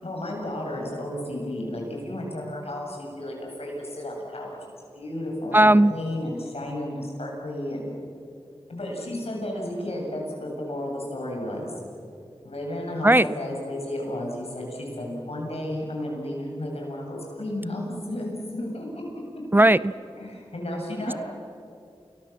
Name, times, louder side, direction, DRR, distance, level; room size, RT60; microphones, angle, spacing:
voice 1, 0.0-7.9 8.7-11.7 12.4-19.0 20.2-21.2, left 1 dB, 75° left, -1 dB, 7.7 m, -33 dB
voice 2, 5.5-5.9 13.0-13.2 19.5-19.8, right 1 dB, 20° right, 17 dB, 0.5 m, -15 dB
29.0 x 22.0 x 7.4 m, 2.5 s
cardioid pair, 45°, 10 cm